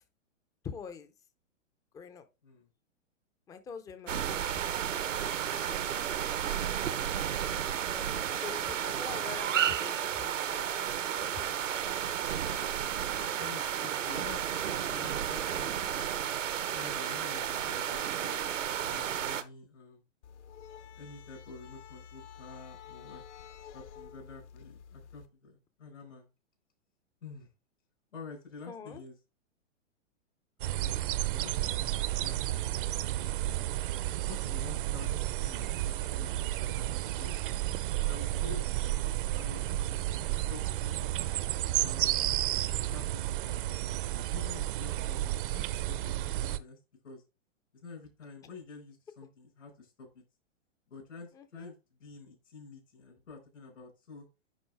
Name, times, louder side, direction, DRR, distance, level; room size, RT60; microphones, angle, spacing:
voice 1, 0.6-1.1 1.9-2.2 3.5-4.4 5.5-5.8 7.5-11.7 28.7-29.0 51.3-51.7, left 6 dB, 10° left, 0.4 m, -45 dB
sound 1, 4.1-19.4, right 9 dB, 80° right, 0.9 m, -32 dB
voice 2, 5.4-5.8 13.4-16.1 16.7-18.4 18.8-20.0 21.0-23.2 23.7-26.3 27.2-27.5 28.1-29.2 30.6-30.9 31.3-31.8 32.2-33.7 34.3-37.3 38.0-38.6 39.3-40.0 40.5-41.2 41.8-42.3 42.9-43.6 44.3-46.8 47.0-47.2 47.8-50.2 50.9-54.3, left 4 dB, 80° left, 4.8 m, -49 dB
sound 2, 20.2-25.3, left 8 dB, 65° left, 0.9 m, -50 dB
sound 3, 30.6-46.6, right 14 dB, 45° right, 0.6 m, -32 dB
10.5 x 3.8 x 3.3 m
hypercardioid pair, 120°, 37 cm